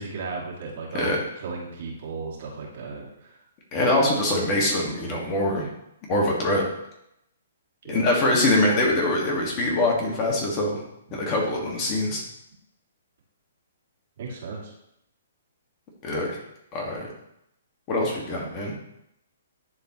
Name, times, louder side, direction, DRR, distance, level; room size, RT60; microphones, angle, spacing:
voice 1, 0.0-3.3 7.8-8.1 14.2-14.7, right 4 dB, 55° right, -3 dB, 2.5 m, -35 dB
voice 2, 3.7-5.7 6.1-6.6 7.9-10.8 11.1-12.2 16.0-16.4 16.7-17.1 17.9-18.7, left 1 dB, 30° left, -2 dB, 1.7 m, -23 dB
11.0 x 4.0 x 3.0 m, 0.79 s
hypercardioid pair, 135°, 0 cm